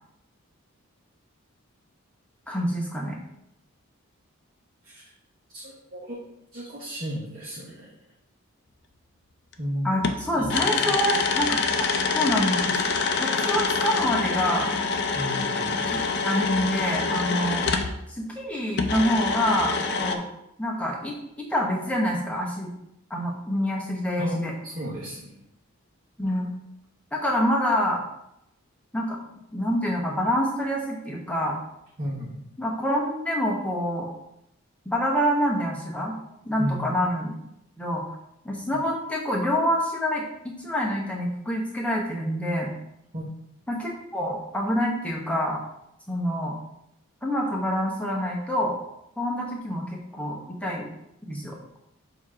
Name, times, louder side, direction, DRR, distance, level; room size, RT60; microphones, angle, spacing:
voice 1, 2.5-3.2 9.8-11.9 12.1-12.8 13.2-14.7 15.9-17.6 18.1-20.3 20.6-21.1 21.5-22.7 23.1-24.5 26.2-26.5 27.1-28.0 28.9-29.2 29.5-31.6 32.6-34.1 34.8-36.2 36.4-37.3 37.8-38.0 38.4-42.7 43.7-45.6 46.1-46.6 47.2-48.7 49.2-50.9 51.3-51.6, equal, 5° left, -2 dB, 1.0 m, -26 dB
voice 2, 5.5-6.2 6.5-8.0 9.6-9.9 10.4-11.0 15.1-15.8 24.2-25.4 32.0-32.4 36.6-36.9 43.1-43.2, equal, 40° right, -7 dB, 1.1 m, -34 dB
sound 1, 9.5-9.6 10.0-17.9 18.8-20.2, left 4 dB, 50° left, 0.5 m, -26 dB
7.0 x 2.9 x 4.8 m, 0.80 s
head